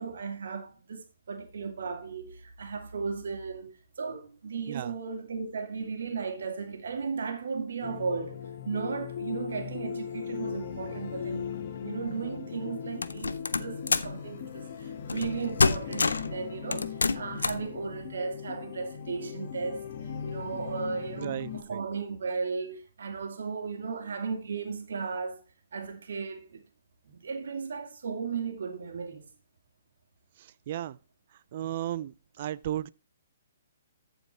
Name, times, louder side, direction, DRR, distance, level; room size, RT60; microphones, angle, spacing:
voice 1, 0.0-11.5 11.8-19.8 20.2-25.4 25.7-26.6 27.1-29.3, right 5 dB, 70° right, 2.4 m, -35 dB
sound 1, 7.8-21.6, left 7 dB, 50° left, 1.6 m, -38 dB
sound 2, 13.0-14.2 15.1-15.3 15.6-16.3 16.7-17.7, left 4 dB, 90° left, 0.7 m, -26 dB
voice 2, 21.2-21.8 30.4-31.0 31.5-32.9, right 12 dB, 50° right, 0.4 m, -35 dB
14.0 x 5.0 x 4.3 m
hypercardioid pair, 140°, 0 cm